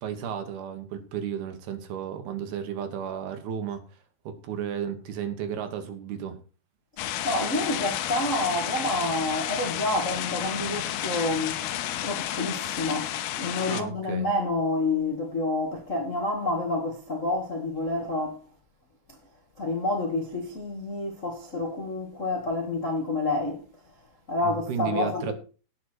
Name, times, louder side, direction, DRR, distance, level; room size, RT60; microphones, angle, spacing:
voice 1, 0.0-3.8 4.2-6.4 13.7-14.3 24.4-25.3, right 8 dB, 75° right, 3.4 m, -33 dB
sound 1, 7.0-13.8, left 12 dB, 80° left, 2.7 m, -31 dB
voice 2, 7.2-11.6 12.0-13.1 13.4-18.4 19.6-23.6 24.3-25.3, left 2 dB, 45° left, 1.0 m, -28 dB
18.0 x 6.4 x 4.5 m
omnidirectional pair, 4.6 m